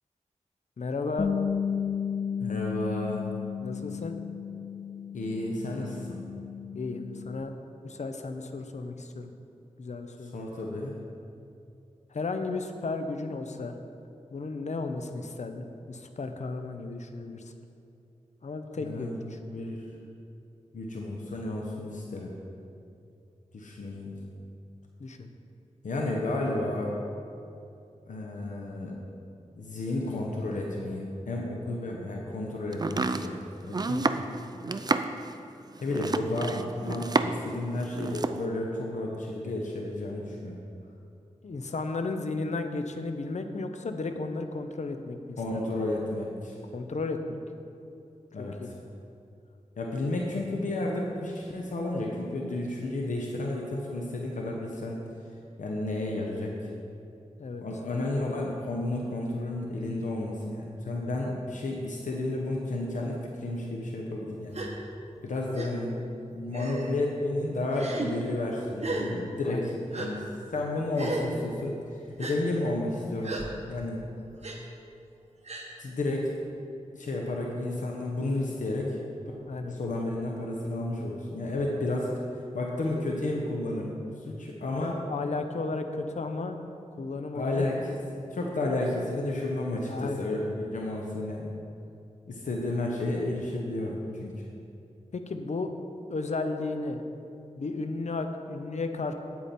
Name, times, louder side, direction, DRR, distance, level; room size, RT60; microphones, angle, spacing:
voice 1, 0.8-1.3 3.6-4.1 6.7-7.5 7.8-9.3 9.8-10.3 12.1-13.8 14.3-17.5 18.4-19.4 25.0-25.3 41.4-45.7 46.7-47.4 48.4-48.7 57.4-57.6 69.4-69.7 70.1-70.2 79.5-79.8 81.4-81.5 84.7-86.6 87.0-87.7 89.8-90.3 95.1-95.7 96.1-97.0 97.6-99.1, left 3 dB, 65° left, 6 dB, 0.7 m, -34 dB
Bass guitar, 1.2-7.4, left 7 dB, 40° left, 0.4 m, -33 dB
voice 2, 2.4-3.2 5.1-6.2 10.2-11.0 18.8-19.2 19.5-19.8 20.7-22.4 23.5-24.2 25.8-27.0 28.1-29.0 29.5-34.5 35.8-40.6 45.4-46.5 48.3-48.7 49.8-55.0 55.6-56.7 57.6-64.7 65.2-66.0 66.3-70.2 70.5-73.4 73.7-74.0 75.8-76.3 76.9-79.0 79.7-82.1 82.5-85.0 87.3-91.5 92.3-94.4, left 2 dB, 90° left, -1 dB, 0.9 m, -32 dB
Domestic sounds home sounds, 32.7-37.5 37.8-38.4, right 3 dB, 30° right, 0.4 m, -29 dB
Gasp, 64.5-64.7 65.6-65.7 66.5-66.9 67.7-68.1 68.8-69.1 69.9-70.1 70.9-71.3 72.2-72.4 73.2-73.4 74.4-74.6 75.4-75.7, right 2 dB, 60° right, 1.2 m, -34 dB
9.0 x 8.4 x 4.3 m, 2.7 s
wide cardioid pair, 70°, 13 cm